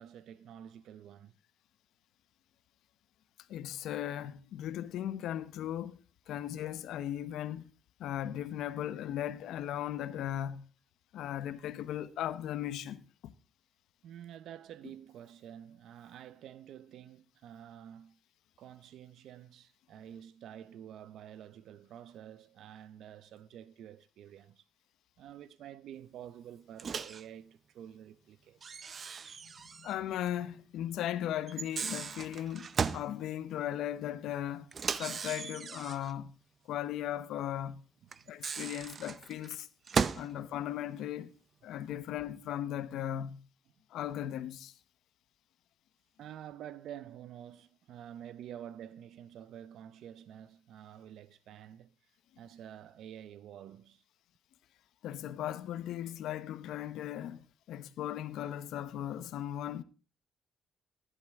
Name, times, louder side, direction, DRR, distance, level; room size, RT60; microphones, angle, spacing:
voice 1, 0.0-1.4 14.0-18.2 18.6-24.6 25.2-28.8 38.2-38.3 46.2-51.9 52.4-54.0, right 10 dB, 75° right, 0.8 m, -49 dB
voice 2, 3.5-6.0 6.3-7.7 8.0-10.7 11.1-13.3 29.8-34.7 35.0-36.3 36.7-37.8 38.3-39.7 40.1-41.3 41.6-43.4 43.9-44.7 55.0-59.8, left 11 dB, 85° left, 0.9 m, -37 dB
Microwave oven, 26.8-27.2 28.6-30.0 30.3-30.4 31.5-33.1 34.7-36.1 38.1-40.3, right 6 dB, 45° right, 0.7 m, -36 dB
15.5 x 11.5 x 3.6 m
cardioid pair, 90°, 0 cm